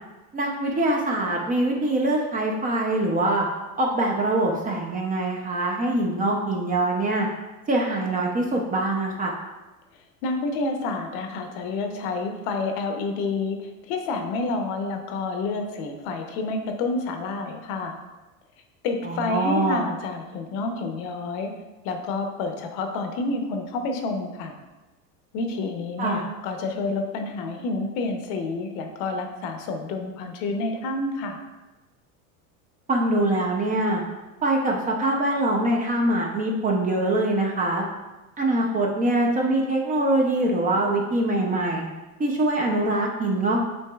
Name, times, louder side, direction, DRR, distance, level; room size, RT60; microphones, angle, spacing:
voice 1, 0.3-3.5 3.8-7.3 7.7-9.3 19.0-19.8 26.0-26.2 32.9-34.0 34.4-37.8 38.4-41.9 42.2-43.6, right 1 dB, 20° right, 0 dB, 0.5 m, -23 dB
voice 2, 10.2-18.0 18.8-21.5 21.8-24.5 25.3-31.4, left 3 dB, 60° left, 5 dB, 0.8 m, -29 dB
7.7 x 2.9 x 2.3 m, 1.1 s
supercardioid pair, 120°, 42 cm